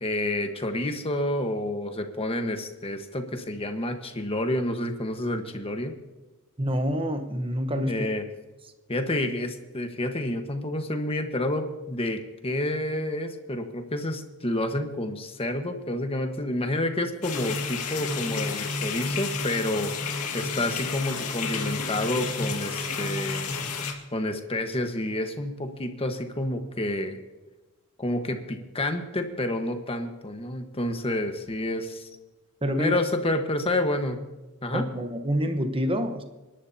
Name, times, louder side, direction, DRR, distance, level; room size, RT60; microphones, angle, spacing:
voice 1, 0.0-5.9 7.9-8.2 8.9-23.5 24.1-27.2 28.0-32.1 32.8-34.2 34.6-34.9, left 1 dB, 25° left, 6 dB, 1.3 m, -29 dB
voice 2, 6.6-8.1 32.6-33.0 34.7-36.2, equal, 25° right, 7 dB, 1.1 m, -27 dB
sound 1, 17.2-23.9, left 4 dB, 85° left, 2.0 m, -31 dB
27.5 x 11.5 x 2.8 m, 1.1 s
head